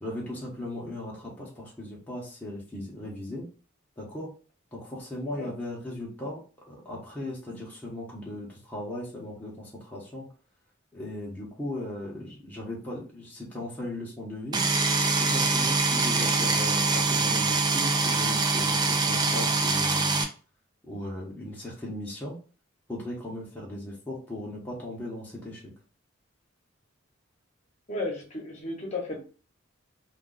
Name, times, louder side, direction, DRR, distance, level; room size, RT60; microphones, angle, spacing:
voice 1, 0.0-3.5 4.0-4.3 4.7-10.3 10.9-14.6 15.2-20.3 20.9-22.4 22.9-25.7, left 1 dB, 10° left, -5 dB, 0.8 m, -37 dB
sound 1, 14.5-20.2, right 3 dB, 20° right, 0.4 m, -24 dB
voice 2, 27.9-29.2, left 2 dB, 35° left, -1 dB, 0.9 m, -34 dB
2.4 x 2.3 x 3.7 m, 0.36 s
head